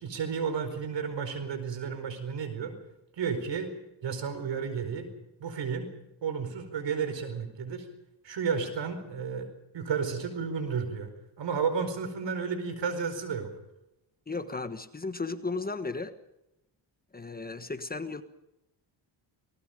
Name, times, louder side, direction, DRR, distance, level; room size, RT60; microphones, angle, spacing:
voice 1, 0.0-2.7 3.2-3.7 4.0-5.1 5.4-5.9 6.2-7.9 8.2-9.5 9.7-11.1 11.4-13.5, right 6 dB, 70° right, 9 dB, 4.8 m, -32 dB
voice 2, 14.3-16.1 17.1-18.2, left 3 dB, 20° left, 9 dB, 1.3 m, -35 dB
28.5 x 19.5 x 5.2 m, 0.91 s
cardioid pair, 115°, 45 cm